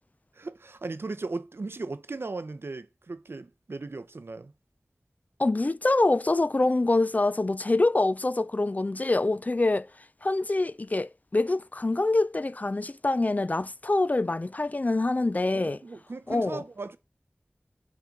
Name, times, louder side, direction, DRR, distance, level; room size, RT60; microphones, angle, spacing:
voice 1, 0.3-4.5 15.5-17.0, right 3 dB, 75° right, 0.6 m, -37 dB
voice 2, 5.4-9.9 10.2-15.8 16.3-16.6, left 2 dB, 40° left, 0.4 m, -25 dB
7.9 x 3.7 x 5.2 m
wide cardioid pair, 40°, 4 cm